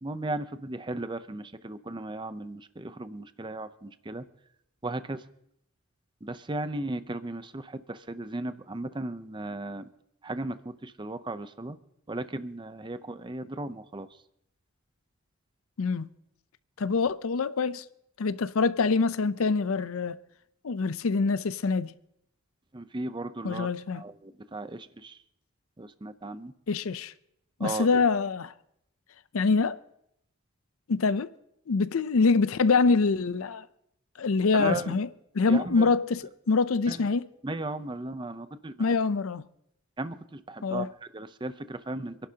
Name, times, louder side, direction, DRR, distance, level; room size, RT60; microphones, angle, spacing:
voice 1, 0.0-4.2 4.8-5.3 6.2-9.9 10.2-11.8 12.1-14.1 22.7-23.7 23.9-25.2 25.8-26.5 27.6-28.0 34.5-35.0 35.5-35.9 36.9-37.1 37.4-39.0 40.0-42.2, right 2 dB, 20° right, 0.6 m, -36 dB
voice 2, 15.8-16.1 16.8-17.8 18.2-20.2 20.6-21.9 23.4-24.0 26.7-27.1 27.6-28.5 29.3-29.8 30.9-31.3 31.7-33.7 34.2-35.1 35.3-37.3 38.8-39.4 40.6-40.9, left 4 dB, 70° left, 0.5 m, -25 dB
27.0 x 11.5 x 2.8 m
head